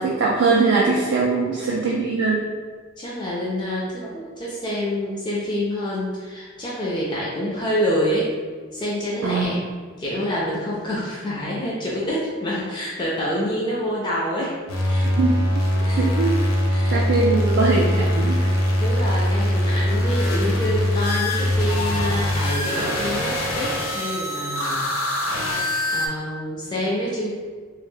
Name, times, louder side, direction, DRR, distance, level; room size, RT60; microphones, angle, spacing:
voice 1, 0.0-2.4 9.2-9.5 15.0-15.3 16.0-16.4 16.9-18.5, right 3 dB, 60° right, -4 dB, 0.3 m, -21 dB
voice 2, 1.2-1.7 3.0-8.3 8.7-9.6 10.0-14.5 14.9-15.1 15.8-16.0 16.7-17.0 18.8-24.9 25.1-27.3, equal, 20° left, -5 dB, 0.3 m, -27 dB
sound 1, 14.7-26.1, left 1 dB, 80° left, 0.5 m, -22 dB
2.3 x 2.2 x 3.0 m, 1.5 s
head